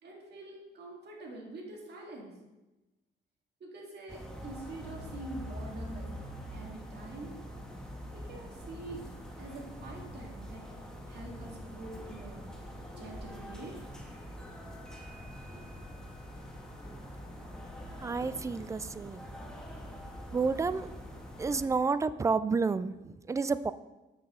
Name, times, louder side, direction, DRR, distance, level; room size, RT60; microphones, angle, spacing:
voice 1, 0.0-2.3 3.6-6.2 6.5-7.4 8.1-9.0 9.4-10.7 11.1-12.5 13.0-13.8, right 2 dB, 55° right, -1 dB, 2.1 m, -45 dB
sound 1, 4.1-21.7, equal, 5° left, 1.4 m, -44 dB
voice 2, 18.0-19.3 20.3-20.9 21.4-23.7, right 4 dB, 15° right, 14 dB, 0.3 m, -30 dB
8.7 x 6.0 x 3.8 m, 1.1 s
cardioid pair, 90°, 20 cm